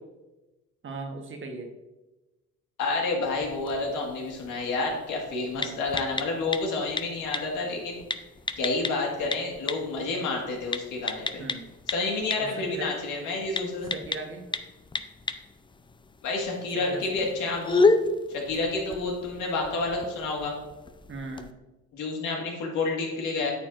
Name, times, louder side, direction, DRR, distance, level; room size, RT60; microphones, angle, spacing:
voice 1, 0.8-1.7 5.5-5.8 11.4-11.6 12.4-12.9 13.9-14.5 16.7-17.3 21.1-21.5, right 3 dB, 40° right, 4 dB, 1.3 m, -38 dB
voice 2, 2.8-8.0 8.6-11.4 11.9-13.9 16.2-17.9 18.3-20.5 21.9-23.5, left 3 dB, 90° left, 0 dB, 1.8 m, -29 dB
sound 1, 3.2-21.5, left 3 dB, 15° left, 0.4 m, -33 dB
8.9 x 7.2 x 2.6 m, 1.1 s
cardioid pair, 90°, 30 cm